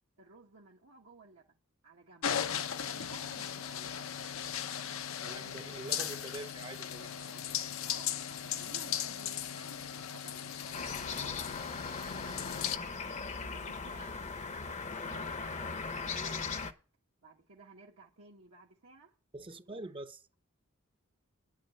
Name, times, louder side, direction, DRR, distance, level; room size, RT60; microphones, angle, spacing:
voice 1, 0.2-1.6 1.8-2.4 2.7-4.1 7.9-11.4 11.9-12.9 13.4-14.2 14.9-15.3 17.2-19.1 19.5-19.8, right 3 dB, 75° right, 1.5 m, -56 dB
sound 1, 2.2-12.8, left 9 dB, 70° left, 0.7 m, -37 dB
voice 2, 5.2-7.4 15.6-15.7 16.1-16.5 19.3-20.2, right 2 dB, 25° right, 0.8 m, -45 dB
sound 2, 10.7-16.7, left 4 dB, 35° left, 0.8 m, -39 dB
9.9 x 7.4 x 6.6 m
head